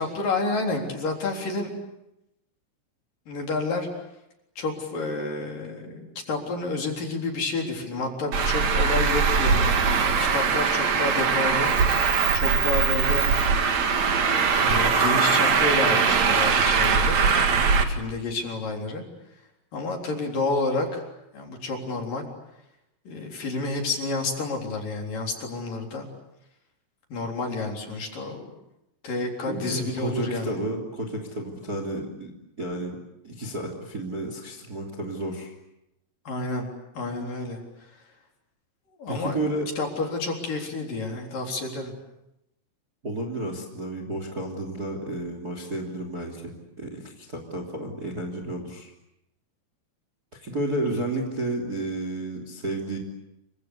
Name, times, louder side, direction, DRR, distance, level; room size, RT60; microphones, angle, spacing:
voice 1, 0.0-1.8 3.3-3.9 4.6-11.9 12.3-13.2 14.6-17.2 17.9-19.0 19.7-21.0 21.3-22.3 23.0-26.1 27.1-28.5 29.0-30.7 36.2-36.7 36.9-37.6 39.0-39.4 39.8-41.9 50.8-51.0, left 3 dB, 45° left, 2 dB, 5.0 m, -29 dB
Traffic noise roadway noise, 8.3-17.8, right 5 dB, 45° right, 2.5 m, -21 dB
voice 2, 29.5-32.3 32.6-33.0 33.2-35.5 39.1-39.6 43.0-48.9 50.4-53.0, right 1 dB, 25° right, 5 dB, 2.7 m, -31 dB
28.5 x 24.5 x 8.3 m, 0.87 s
omnidirectional pair, 5.8 m